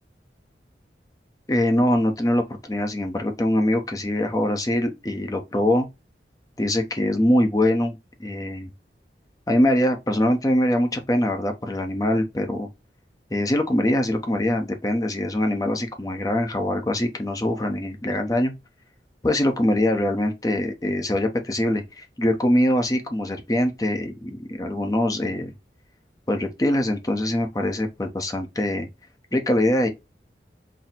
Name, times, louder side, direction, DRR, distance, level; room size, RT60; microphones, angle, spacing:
voice 1, 1.5-5.9 6.6-8.7 9.5-12.7 13.3-18.5 19.2-25.5 26.3-28.9 29.3-29.9, left 1 dB, 20° left, 0.6 m, -23 dB
4.1 x 2.0 x 4.0 m
head